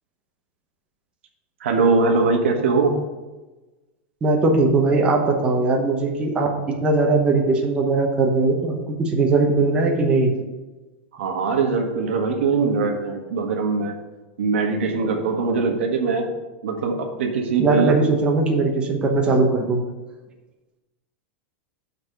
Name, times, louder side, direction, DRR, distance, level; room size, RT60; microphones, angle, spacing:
voice 1, 1.6-3.0 11.1-13.9 14.4-16.3 16.6-17.9, right 4 dB, 90° right, 3 dB, 1.4 m, -21 dB
voice 2, 4.2-10.3 17.6-19.8, right 3 dB, 15° right, 0 dB, 0.9 m, -20 dB
7.1 x 4.1 x 6.5 m, 1.2 s
supercardioid pair, 160°, 6 cm